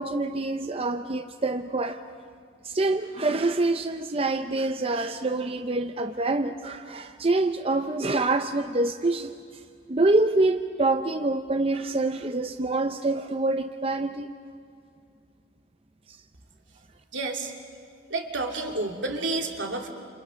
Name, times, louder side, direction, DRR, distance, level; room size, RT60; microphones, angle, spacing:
voice 1, 0.0-2.0 2.6-9.3 9.9-14.3 16.1-16.2, right 2 dB, 30° right, 8 dB, 0.7 m, -26 dB
voice 2, 17.1-17.5 18.1-19.9, right 2 dB, 75° right, 2 dB, 2.8 m, -30 dB
28.5 x 28.5 x 6.4 m, 2.3 s
head